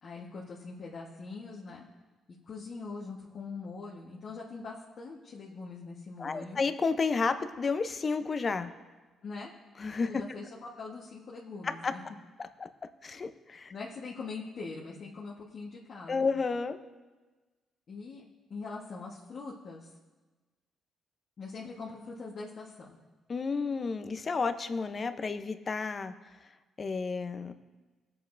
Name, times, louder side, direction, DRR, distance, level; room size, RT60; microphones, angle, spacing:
voice 1, 0.0-1.9 2.5-6.6 9.2-9.5 10.1-12.0 13.7-16.3 17.9-19.9 21.4-23.0, left 4 dB, 55° left, -5 dB, 1.3 m, -42 dB
voice 2, 6.2-8.7 9.8-10.4 11.6-11.9 12.6-12.7 13.0-13.7 16.1-16.8 23.3-26.1 26.8-27.5, left 4 dB, 40° left, 10 dB, 0.7 m, -31 dB
20.0 x 7.7 x 2.6 m, 1.3 s
cardioid pair, 90°, 0 cm